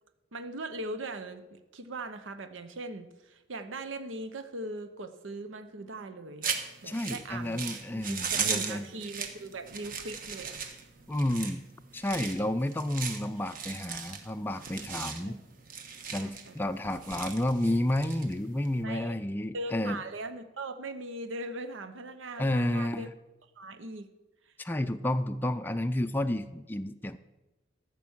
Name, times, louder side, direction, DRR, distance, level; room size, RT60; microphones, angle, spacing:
voice 1, 0.3-6.5 6.8-7.7 7.9-10.7 15.2-15.4 16.2-16.6 18.8-19.2 19.5-23.1 23.6-24.1 24.5-24.6, right 2 dB, 85° right, 9 dB, 0.8 m, -40 dB
sound 1, 6.4-18.8, right 6 dB, 45° right, 1.2 m, -37 dB
voice 2, 6.9-8.8 11.1-11.6 11.9-15.4 16.1-20.0 22.4-23.1 24.6-27.2, left 1 dB, 10° left, 8 dB, 0.4 m, -31 dB
14.0 x 6.0 x 7.2 m, 1.0 s
head